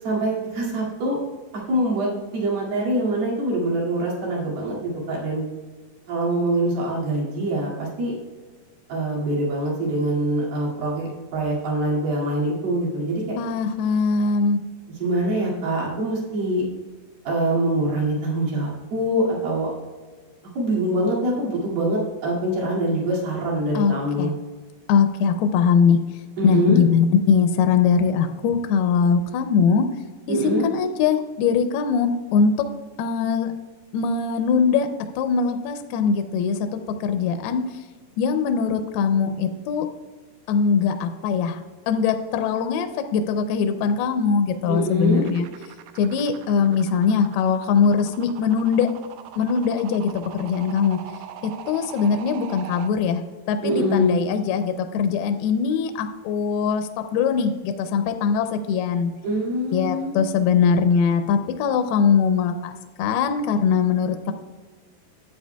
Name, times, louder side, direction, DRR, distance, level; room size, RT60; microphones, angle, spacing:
voice 1, 0.0-1.2 1.7-5.4 6.1-8.2 8.9-13.4 15.0-16.6 17.3-19.7 20.6-24.3 26.4-26.8 30.3-30.7 44.7-45.3 53.6-54.2 59.2-60.2, right 1 dB, 65° right, -5 dB, 3.9 m, -24 dB
voice 2, 13.4-14.6 23.7-24.3 24.9-26.0 26.4-29.8 30.3-32.5 33.0-33.5 33.9-34.9 35.2-37.6 38.2-39.9 40.5-41.6 41.9-45.5 46.0-48.9 49.4-51.0 51.4-53.2 53.5-59.1 59.7-64.3, left 6 dB, 80° left, 7 dB, 2.4 m, -21 dB
sound 1, 45.2-52.9, right 10 dB, 85° right, 2.1 m, -41 dB
12.5 x 8.3 x 2.2 m, 1.4 s
omnidirectional pair, 4.8 m